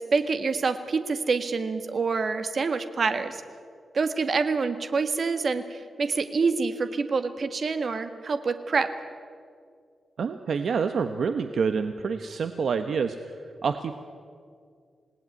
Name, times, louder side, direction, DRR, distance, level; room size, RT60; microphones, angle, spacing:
voice 1, 0.0-3.4 3.9-8.9, right 4 dB, 45° right, 9 dB, 1.7 m, -26 dB
voice 2, 10.2-13.2 13.6-14.0, right 5 dB, 60° right, 8 dB, 1.1 m, -27 dB
27.0 x 18.5 x 9.6 m, 2.2 s
wide cardioid pair, 155°, 0 cm